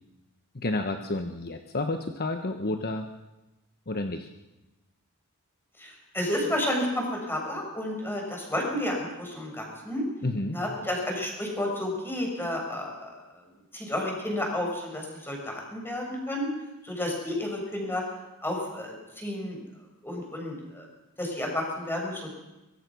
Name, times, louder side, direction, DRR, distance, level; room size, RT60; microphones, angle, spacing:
voice 1, 0.5-3.1 3.9-4.3 10.2-10.6, left 2 dB, 45° left, 6 dB, 1.3 m, -30 dB
voice 2, 5.8-10.0 10.5-13.2 13.7-16.5 16.8-18.0 18.4-19.6 20.0-20.9 21.2-22.3, left 1 dB, 10° left, 0 dB, 6.9 m, -31 dB
23.5 x 21.0 x 6.3 m, 1.0 s
head